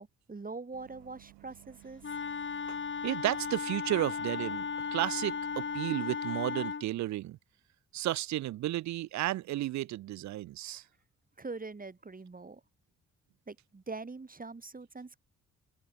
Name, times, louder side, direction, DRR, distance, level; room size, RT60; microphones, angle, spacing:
voice 1, 0.0-2.0 11.4-12.6 13.5-15.2, right 3 dB, 25° right, 1.5 m, -43 dB
Bus, 0.7-5.8, right 28 dB, 85° right, 1.3 m, -56 dB
Wind instrument woodwind instrument, 2.0-6.9, left 5 dB, 35° left, 1.3 m, -36 dB
voice 2, 3.0-7.4 7.9-10.8, right 15 dB, 55° right, 0.4 m, -33 dB
open air
hypercardioid pair, 45°, 36 cm